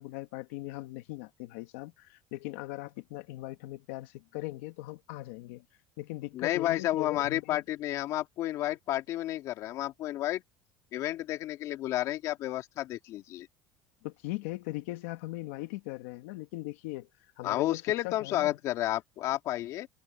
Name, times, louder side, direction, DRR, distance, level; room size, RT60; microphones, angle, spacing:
voice 1, 0.0-5.6 6.0-7.6 14.0-17.1 17.4-18.6, left 19 dB, 85° left, 1.9 m, -39 dB
voice 2, 6.3-10.4 10.9-13.5 17.4-19.9, left 14 dB, 55° left, 2.0 m, -31 dB
cardioid pair, 135°, 7 cm